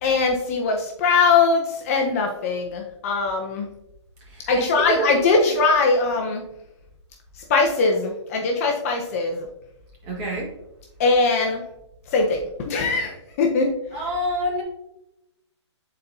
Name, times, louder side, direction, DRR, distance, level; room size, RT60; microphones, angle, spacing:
voice 1, 0.0-3.6 4.5-6.4 7.5-9.5 11.0-11.6 12.1-13.7, left 4 dB, 30° left, 2 dB, 0.7 m, -21 dB
voice 2, 4.3-5.4 10.1-10.5 13.9-14.6, equal, 25° right, -2 dB, 1.7 m, -27 dB
9.1 x 4.2 x 2.6 m, 0.86 s
hypercardioid pair, 155°, 15 cm